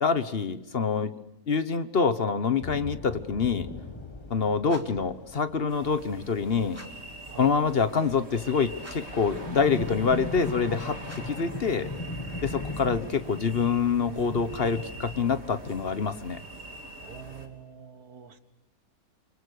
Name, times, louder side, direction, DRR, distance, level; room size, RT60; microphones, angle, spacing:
voice 1, 0.0-1.1 1.5-3.7 4.3-6.8 7.4-11.0 11.2-11.9 12.4-16.4, left 5 dB, 45° left, 11 dB, 1.2 m, -26 dB
sound 1, 2.6-8.0 8.3-15.7, left 2 dB, 20° left, 1.5 m, -40 dB
sound 2, 4.6-5.1 6.7-7.2 8.8-9.3 11.0-11.5, right 1 dB, 10° right, 2.5 m, -49 dB
sound 3, 5.7-17.5, right 2 dB, 45° right, 3.3 m, -43 dB
voice 2, 17.0-18.4, right 7 dB, 75° right, 9 dB, 2.0 m, -45 dB
28.0 x 24.5 x 6.5 m, 0.88 s
omnidirectional pair, 1.6 m